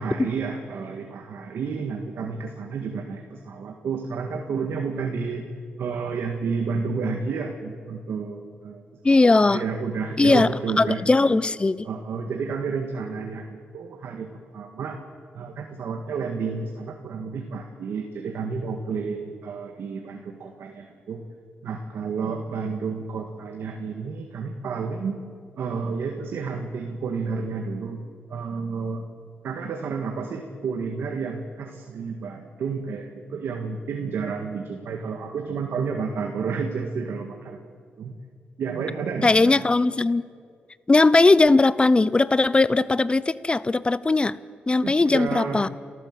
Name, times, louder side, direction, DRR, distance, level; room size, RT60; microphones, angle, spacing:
voice 1, 0.0-5.5 5.8-11.4 11.8-15.0 15.3-21.2 21.6-25.2 25.6-28.0 28.3-29.0 29.4-37.7 38.0-38.2 38.6-39.7 44.8-45.6, right 5 dB, 75° right, 3 dB, 1.8 m, -31 dB
voice 2, 9.0-9.6 10.2-10.5 10.8-11.9 39.2-40.3 40.9-44.3 44.7-45.7, left 3 dB, 25° left, 18 dB, 0.7 m, -19 dB
29.5 x 13.5 x 7.8 m, 2.1 s
cardioid pair, 70°, 4 cm